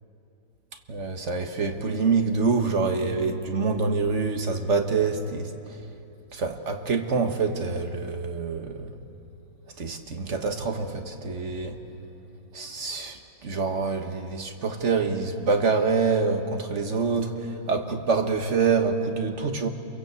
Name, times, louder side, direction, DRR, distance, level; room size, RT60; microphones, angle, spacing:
voice 1, 0.9-5.5 6.3-8.9 9.8-11.8 12.5-19.7, right 4 dB, 40° right, 5 dB, 1.5 m, -26 dB
28.5 x 22.5 x 8.2 m, 2.8 s
omnidirectional pair, 2.1 m